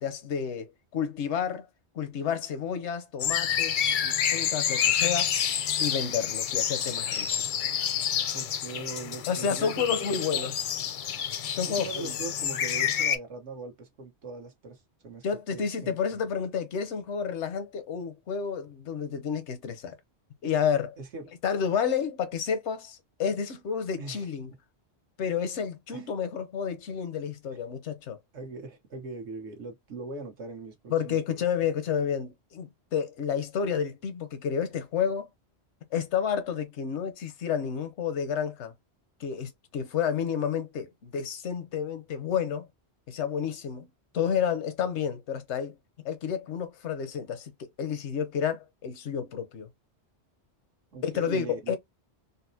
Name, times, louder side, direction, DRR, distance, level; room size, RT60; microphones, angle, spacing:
voice 1, 0.0-1.7 1.9-5.3 5.8-7.3 9.3-10.5 11.5-12.1 15.2-20.0 20.4-21.0 21.4-24.5 25.2-28.2 30.9-35.3 35.9-38.7 39.2-42.7 43.1-43.9 44.1-45.7 46.0-49.7 51.0-51.8, left 7 dB, 85° left, 1.0 m, -30 dB
sound 1, 3.2-13.2, left 9 dB, 60° left, 0.6 m, -28 dB
voice 2, 8.3-10.5 11.7-15.2 15.5-16.2 21.0-21.3 24.0-24.3 25.9-26.1 28.3-31.2 50.9-51.8, right 3 dB, 80° right, 1.3 m, -41 dB
4.0 x 2.0 x 2.6 m
omnidirectional pair, 1.2 m